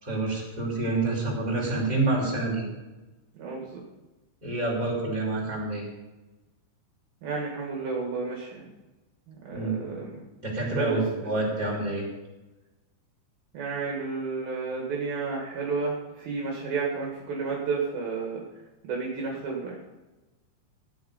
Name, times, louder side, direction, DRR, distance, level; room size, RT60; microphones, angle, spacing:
voice 1, 0.0-2.6 4.4-5.9 9.5-9.9 10.4-12.0, right 2 dB, 10° right, -5 dB, 4.5 m, -28 dB
voice 2, 3.4-3.8 7.2-8.6 9.3-10.2 10.7-10.9 13.5-18.4 18.8-19.8, right 4 dB, 60° right, -2 dB, 3.5 m, -31 dB
15.0 x 9.6 x 5.4 m, 1.1 s
omnidirectional pair, 5.0 m